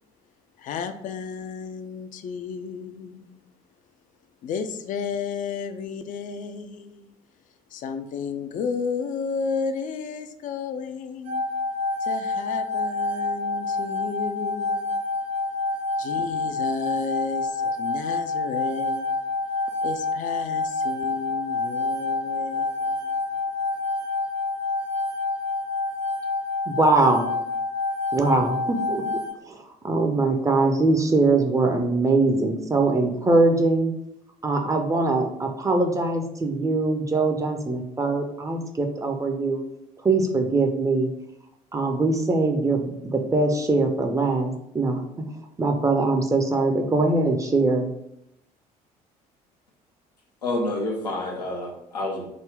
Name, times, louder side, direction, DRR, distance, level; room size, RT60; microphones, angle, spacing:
voice 1, 0.6-3.4 4.4-7.1 7.7-11.4 12.0-15.0 16.0-19.1 19.8-23.2, left 5 dB, 40° left, 9 dB, 0.4 m, -32 dB
sound 1, 11.3-29.3, left 3 dB, 60° right, 1.1 m, -27 dB
voice 2, 26.7-27.3 28.1-29.0 29.5-33.9 34.4-39.6 40.0-41.1 41.7-45.0 45.6-47.9, right 3 dB, 15° right, 3 dB, 0.5 m, -22 dB
voice 3, 50.4-52.3, left 2 dB, 90° left, -2 dB, 0.6 m, -28 dB
3.8 x 2.1 x 3.3 m, 0.82 s
figure-of-eight pair, 55°, 20 cm